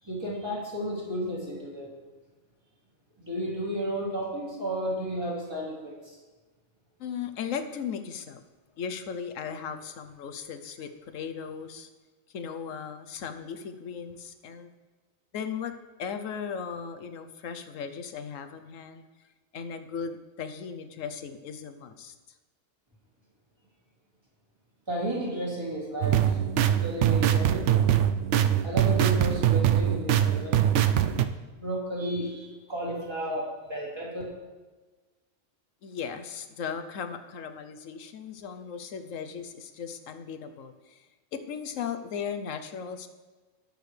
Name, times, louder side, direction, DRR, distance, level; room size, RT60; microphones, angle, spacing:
voice 1, 0.0-1.9 3.2-6.0 24.9-26.4 26.7-27.8 28.6-30.7 31.6-34.2, right 1 dB, 20° right, -5 dB, 2.9 m, -33 dB
voice 2, 7.0-8.4 8.8-11.9 12.3-14.7 15.3-19.0 19.5-22.1 35.8-41.1 41.3-43.1, left 7 dB, 75° left, 8 dB, 1.1 m, -37 dB
sound 1, 26.0-31.3, right 10 dB, 70° right, 0.8 m, -23 dB
19.0 x 6.6 x 3.3 m, 1.3 s
omnidirectional pair, 1.4 m